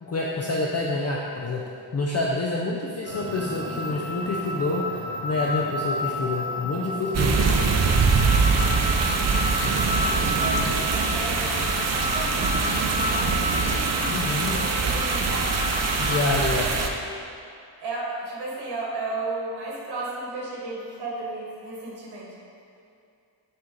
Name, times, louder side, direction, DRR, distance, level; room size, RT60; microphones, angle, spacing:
voice 1, 0.0-1.6 1.9-7.4 14.1-14.6 16.0-16.7, left 2 dB, 35° left, -3 dB, 0.4 m, -27 dB
sound 1, 3.1-16.2, left 1 dB, 65° left, 1.3 m, -31 dB
sound 2, 7.1-16.9, right 4 dB, 35° right, 0.4 m, -23 dB
voice 2, 7.4-9.0 9.7-15.7 17.8-22.4, right 2 dB, 55° right, -4 dB, 1.5 m, -35 dB
6.0 x 4.4 x 3.8 m, 2.5 s
wide cardioid pair, 145°, 47 cm